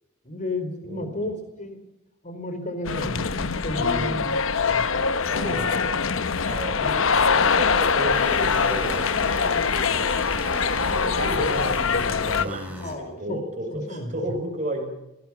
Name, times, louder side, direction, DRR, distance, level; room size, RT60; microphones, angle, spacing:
voice 1, 0.2-1.8 2.2-4.2 4.7-4.9 5.4-5.7 12.8-13.4 13.7-14.1, left 1 dB, 35° left, 9 dB, 3.7 m, -32 dB
voice 2, 0.8-1.3 3.7-4.2 5.2-6.1 6.4-9.6 10.2-15.0, right 1 dB, 35° right, 3 dB, 7.1 m, -33 dB
sound 1, 2.8-12.4, left 5 dB, 65° left, 1.0 m, -23 dB
sound 2, 8.1-12.9, equal, 5° right, 4.9 m, -37 dB
26.5 x 18.5 x 5.9 m, 0.89 s
head